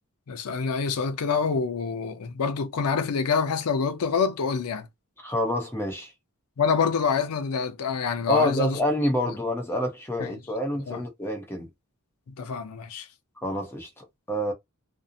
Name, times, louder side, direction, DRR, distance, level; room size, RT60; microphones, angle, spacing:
voice 1, 0.3-4.9 6.6-8.8 10.2-10.3 10.9-11.0 12.4-13.1, left 5 dB, 85° left, 0.5 m, -26 dB
voice 2, 5.2-6.1 8.3-11.7 13.4-14.5, left 1 dB, 10° left, 0.7 m, -27 dB
2.6 x 2.0 x 2.6 m
head